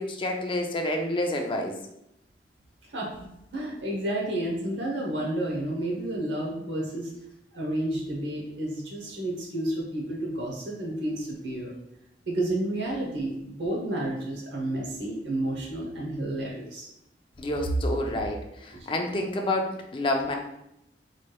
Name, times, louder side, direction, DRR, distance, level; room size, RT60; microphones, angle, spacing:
voice 1, 0.0-1.7 17.4-20.4, left 1 dB, 30° left, 2 dB, 0.5 m, -29 dB
voice 2, 3.5-7.1 7.5-11.7 12.3-16.9 18.7-18.9, right 1 dB, 80° right, -2 dB, 0.9 m, -31 dB
4.1 x 3.2 x 2.2 m, 0.83 s
head